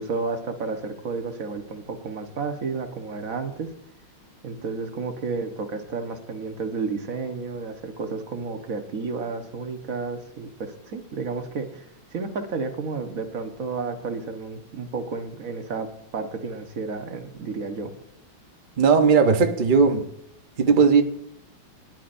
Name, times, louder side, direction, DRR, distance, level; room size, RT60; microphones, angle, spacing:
voice 1, 0.0-3.7 4.4-17.9, right 4 dB, 45° right, 1.4 m, -31 dB
voice 2, 18.8-20.1 20.6-21.0, right 5 dB, 80° right, 0.4 m, -17 dB
21.0 x 10.5 x 2.6 m
omnidirectional pair, 2.3 m